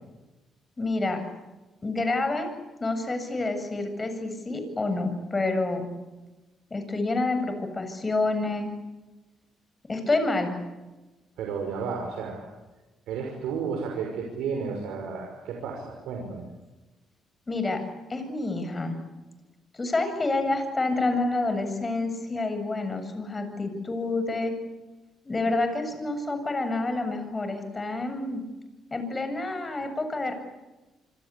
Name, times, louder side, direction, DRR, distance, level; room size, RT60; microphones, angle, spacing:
voice 1, 0.8-1.2 1.8-2.5 2.8-5.9 6.7-8.7 9.8-10.6 17.5-17.8 18.1-19.0 19.7-24.6 25.2-28.4 28.9-30.3, left 2 dB, 25° left, 8 dB, 7.6 m, -28 dB
voice 2, 11.4-12.4 13.1-16.5, right 5 dB, 90° right, 2 dB, 5.8 m, -32 dB
27.0 x 26.0 x 8.5 m, 1.1 s
cardioid pair, 90°, 0 cm